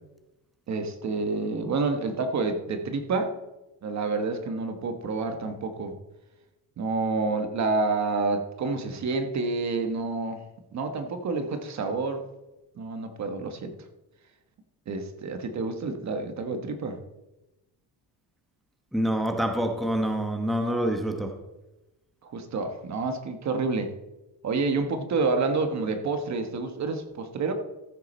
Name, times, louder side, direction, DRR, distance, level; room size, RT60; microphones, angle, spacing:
voice 1, 0.7-3.3 3.8-6.0 6.8-10.4 10.7-12.2 12.8-13.7 14.9-17.0 22.2-23.9 24.4-27.5, right 3 dB, 40° right, 7 dB, 1.2 m, -28 dB
voice 2, 18.9-21.3, equal, ahead, 4 dB, 0.9 m, -26 dB
14.5 x 8.1 x 4.2 m, 1.0 s
cardioid pair, 145°, 41 cm